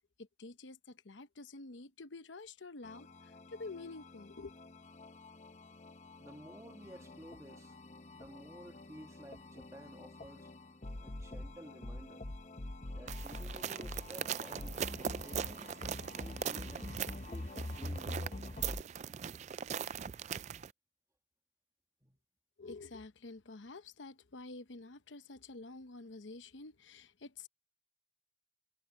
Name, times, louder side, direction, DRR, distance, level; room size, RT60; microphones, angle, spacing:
voice 1, 0.2-4.6 22.6-27.5, left 3 dB, 85° left, 0.9 m, -49 dB
sound 1, 2.8-18.8, left 1 dB, 40° left, 0.9 m, -46 dB
voice 2, 6.2-7.8 8.1-10.5 11.0-12.2 12.9-14.8 15.2-15.8 16.2-18.6 22.0-22.2, right 1 dB, 15° right, 1.7 m, -53 dB
sound 2, 13.1-20.7, right 8 dB, 40° right, 0.3 m, -40 dB
head